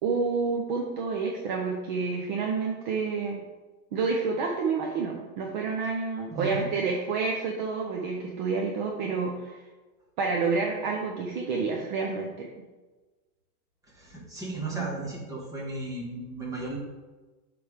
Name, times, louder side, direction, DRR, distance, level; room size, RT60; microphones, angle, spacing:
voice 1, 0.0-3.4 3.9-9.6 10.2-12.5 14.7-14.9, right 4 dB, 30° right, 0 dB, 0.6 m, -29 dB
voice 2, 6.3-6.7 13.9-16.8, right 2 dB, 5° right, -4 dB, 1.2 m, -35 dB
7.4 x 3.5 x 5.0 m, 1.2 s
supercardioid pair, 160°, 46 cm